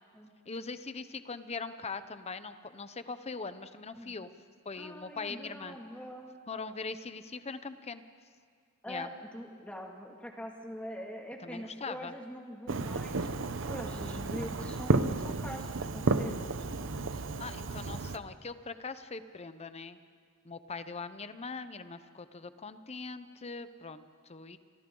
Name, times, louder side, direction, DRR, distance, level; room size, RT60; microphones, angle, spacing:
voice 1, 0.5-4.3 4.6-5.8 6.5-8.0 8.9-9.1 11.4-12.1 17.4-20.0 20.4-24.6, left 4 dB, 30° left, 12 dB, 0.8 m, -41 dB
voice 2, 4.8-6.3 8.8-13.3 13.7-16.4 16.8-17.2, equal, 5° left, 0 dB, 2.3 m, -43 dB
Fireworks, 12.7-18.2, right 3 dB, 65° right, 0.8 m, -32 dB
28.5 x 23.5 x 3.9 m, 2.1 s
head